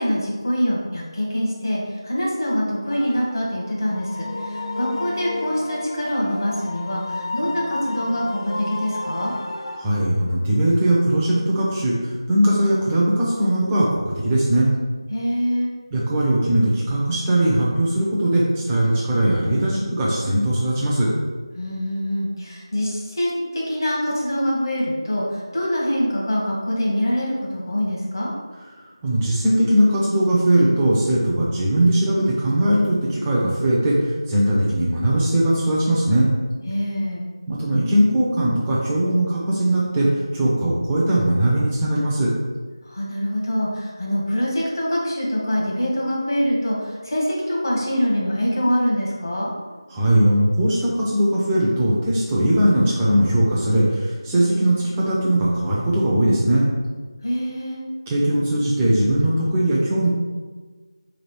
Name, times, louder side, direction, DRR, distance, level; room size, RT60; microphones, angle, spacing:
voice 1, 0.0-9.3 15.1-15.7 21.5-28.3 36.6-37.2 42.8-49.5 57.2-57.8, equal, 45° left, -4 dB, 1.1 m, -24 dB
sound 1, 2.9-9.8, left 2 dB, 75° left, 0.6 m, -31 dB
voice 2, 9.8-14.7 15.9-21.1 29.0-36.3 37.5-42.3 49.9-56.7 58.1-60.1, right 1 dB, 10° right, -6 dB, 0.4 m, -19 dB
3.3 x 2.4 x 4.3 m, 1.4 s
figure-of-eight pair, 170°, 3 cm